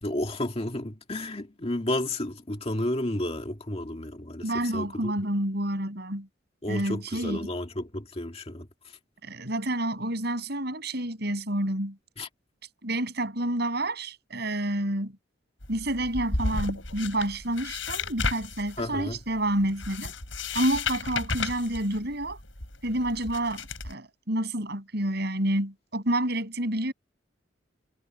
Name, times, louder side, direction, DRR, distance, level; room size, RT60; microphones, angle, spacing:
voice 1, 0.0-5.1 6.6-8.7 12.2-12.3 18.8-19.2, left 1 dB, 30° left, 2.1 m, -32 dB
voice 2, 4.4-6.3 6.7-7.5 9.2-12.0 12.8-15.1 15.7-20.1 20.5-22.4 22.8-26.9, right 1 dB, 60° right, 8.0 m, -29 dB
sound 1, 15.6-23.9, left 3 dB, 85° left, 6.9 m, -34 dB
head